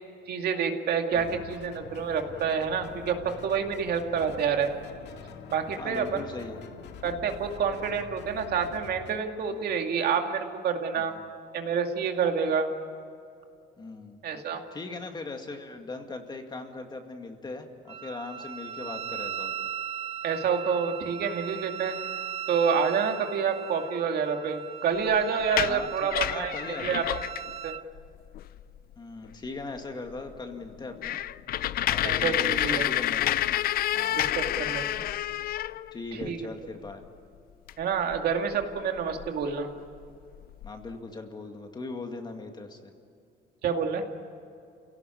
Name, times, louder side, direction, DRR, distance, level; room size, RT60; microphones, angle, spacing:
voice 1, 0.3-4.7 5.5-6.2 7.0-11.1 11.5-12.7 14.2-14.6 20.2-22.0 22.5-26.5 26.8-27.0 27.6-27.7 32.0-32.8 34.1-35.1 36.3-36.4 37.8-39.7 43.6-44.0, right 6 dB, 60° right, 4 dB, 2.4 m, -28 dB
sound 1, 1.1-9.2, left 7 dB, 70° left, 2.0 m, -45 dB
voice 2, 5.8-6.6 9.5-9.7 11.0-11.3 13.8-14.2 14.7-19.7 25.7-27.1 29.0-31.2 31.8-33.4 33.9-34.3 35.9-37.0 40.6-42.9, left 3 dB, 25° left, 4 dB, 2.1 m, -39 dB
Wind instrument woodwind instrument, 17.9-27.8, right 9 dB, 35° right, 0.5 m, -38 dB
sound 2, 25.4-27.5 28.0-28.1 28.3-28.8 29.3-29.4 29.8-29.9 30.2-30.3 30.6-36.3 37.7-37.8 38.1-39.4 40.0-40.1 40.3-40.9, left 13 dB, 55° left, 0.5 m, -29 dB
29.0 x 17.5 x 9.8 m, 2.5 s
cardioid pair, 150°, 18 cm